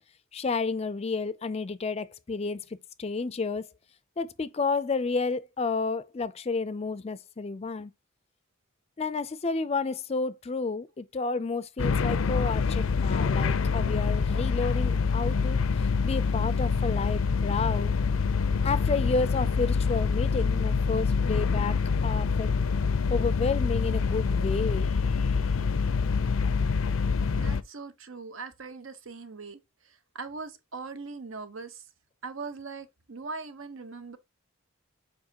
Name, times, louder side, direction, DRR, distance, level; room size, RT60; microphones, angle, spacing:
voice 1, 0.3-2.6 3.0-3.7 4.2-7.9 9.0-15.6 16.0-17.9 18.6-22.5 23.1-24.9, left 4 dB, 30° left, 0.4 m, -31 dB
sound 1, 11.8-27.6, left 5 dB, 80° left, 0.5 m, -26 dB
voice 2, 27.3-31.8 32.2-34.2, right 4 dB, 70° right, 0.9 m, -41 dB
7.1 x 5.0 x 2.9 m
head